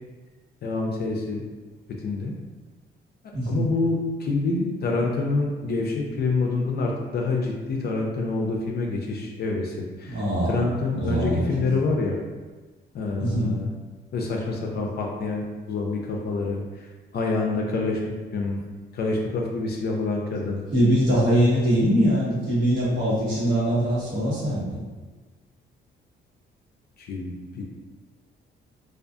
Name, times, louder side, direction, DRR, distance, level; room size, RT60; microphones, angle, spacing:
voice 1, 0.6-1.4 2.0-2.3 3.5-12.2 12.9-13.7 14.1-16.9 17.1-18.0 18.3-18.6 18.9-20.6 27.0-27.6, left 3 dB, 55° left, 0 dB, 0.4 m, -27 dB
voice 2, 3.3-3.6 10.1-10.6 11.0-11.7 13.2-13.6 20.7-24.8, equal, 70° right, -8 dB, 1.1 m, -22 dB
2.4 x 2.3 x 2.4 m, 1.3 s
cardioid pair, 90°, 20 cm